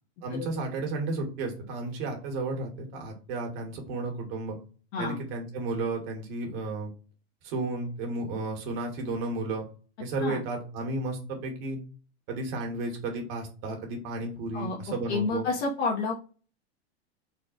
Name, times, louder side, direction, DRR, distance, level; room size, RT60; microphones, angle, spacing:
voice 1, 0.2-4.6 5.0-6.9 7.4-9.6 10.0-11.8 12.3-15.4, right 2 dB, 60° right, 2 dB, 1.7 m, -33 dB
voice 2, 15.1-16.2, left 4 dB, 75° left, -3 dB, 1.1 m, -29 dB
3.9 x 2.3 x 4.0 m, 0.37 s
supercardioid pair, 135°, 33 cm